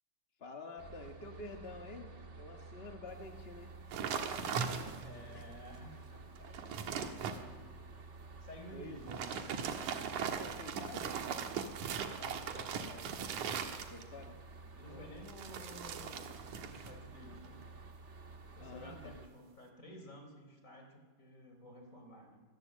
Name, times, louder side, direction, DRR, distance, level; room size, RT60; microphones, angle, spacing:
voice 1, 0.4-3.8 5.3-5.4 6.9-7.1 8.7-8.9 10.4-11.2 13.9-15.1 18.6-19.2, left 3 dB, 40° left, 4 dB, 0.8 m, -49 dB
sound 1, 0.8-19.3, right 3 dB, 35° right, 1.2 m, -52 dB
sound 2, 3.9-5.2 5.7-5.8 6.3-7.4 9.0-14.2 15.3-17.0 17.2-17.6, right 7 dB, 70° right, 2.8 m, -39 dB
voice 2, 5.0-7.9 8.4-9.8 12.1-13.3 14.7-17.6 18.5-22.4, equal, 25° left, 4 dB, 4.0 m, -53 dB
25.5 x 19.5 x 7.6 m, 1.4 s
omnidirectional pair, 3.7 m